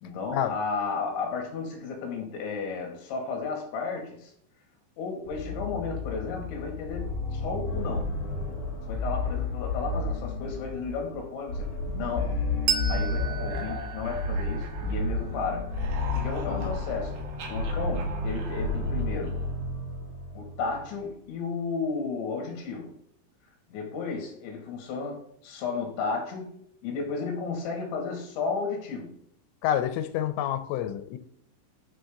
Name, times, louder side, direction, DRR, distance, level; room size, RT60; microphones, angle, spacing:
voice 1, 0.0-4.3 5.0-8.2 8.9-12.4 12.9-15.7 16.1-19.4 20.4-23.0 23.7-29.2, left 4 dB, 70° left, 4.5 m, -33 dB
sound 1, 5.3-21.0, left 2 dB, 50° left, 4.9 m, -32 dB
sound 2, 11.8-15.3 15.6-19.6, right 4 dB, 65° right, 3.1 m, -43 dB
Bell, 12.7-15.8, right 9 dB, 85° right, 3.4 m, -34 dB
voice 2, 29.6-31.2, left 11 dB, 90° left, 3.3 m, -28 dB
11.0 x 5.8 x 3.8 m
omnidirectional pair, 5.6 m